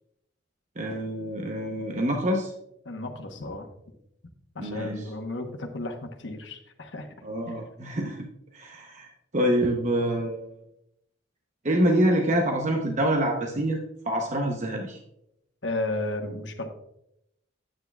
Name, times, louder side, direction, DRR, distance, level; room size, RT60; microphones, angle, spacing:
voice 1, 0.8-2.5 4.6-5.0 7.2-8.2 8.5-10.5 11.6-15.0, right 1 dB, 40° right, 1 dB, 0.8 m, -26 dB
voice 2, 2.8-3.6 4.5-7.1 15.6-16.7, left 2 dB, 70° left, 4 dB, 1.1 m, -33 dB
9.4 x 8.7 x 2.3 m, 0.79 s
head